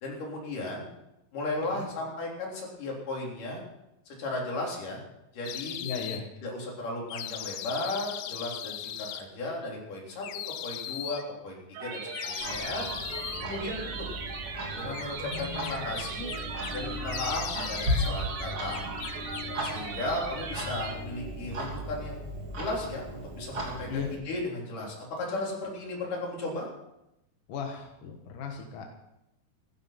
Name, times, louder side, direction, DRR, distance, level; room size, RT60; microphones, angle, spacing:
voice 1, 0.0-0.9 1.3-3.6 4.2-5.0 5.3-5.8 6.4-10.3 10.6-12.9 13.4-14.1 14.8-16.3 16.7-18.8 19.4-22.3 22.6-26.7, left 2 dB, 45° left, -2 dB, 4.8 m, -35 dB
sound 1, 5.5-6.2 7.1-9.2 10.2-11.2 12.1-13.5 14.9-16.8 17.1-18.1 18.4-19.9, left 11 dB, 85° left, 3.4 m, -38 dB
voice 2, 5.8-6.3 15.2-16.0 23.9-24.1 27.5-29.0, left 6 dB, 60° left, 2 dB, 2.2 m, -37 dB
sound 2, 11.7-20.9, right 5 dB, 65° right, 3.9 m, -38 dB
Clock, 12.4-24.2, equal, 30° right, 3.1 m, -36 dB
15.5 x 13.0 x 5.9 m, 0.88 s
omnidirectional pair, 5.6 m